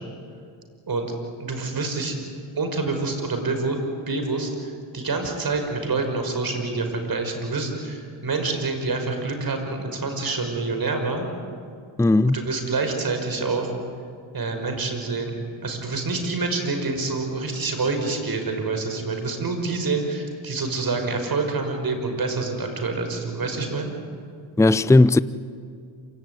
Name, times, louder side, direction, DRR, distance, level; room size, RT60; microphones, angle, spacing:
voice 1, 1.4-2.2 2.6-3.8 4.1-11.3 12.3-13.7 14.3-23.9, right 3 dB, 45° right, 5.6 m, -27 dB
voice 2, 12.0-12.4 24.6-25.2, left 2 dB, 5° left, 0.6 m, -16 dB
27.5 x 17.5 x 9.5 m
cardioid pair, 70°, 48 cm